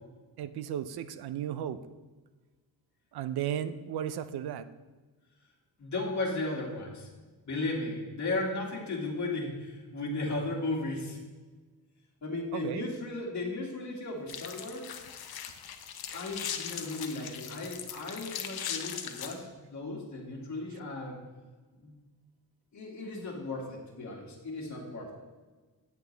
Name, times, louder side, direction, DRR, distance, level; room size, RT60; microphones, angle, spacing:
voice 1, 0.4-1.8 3.1-4.7 12.5-12.9, right 10 dB, 75° right, 12 dB, 0.6 m, -34 dB
voice 2, 5.8-7.1 7.5-11.2 12.2-15.0 16.1-21.2 21.8-21.9 22.7-25.1, left 2 dB, 45° left, -3 dB, 2.2 m, -35 dB
sound 1, 14.3-19.3, left 8 dB, 70° left, 0.8 m, -39 dB
8.9 x 8.2 x 3.3 m, 1.3 s
wide cardioid pair, 140°, 39 cm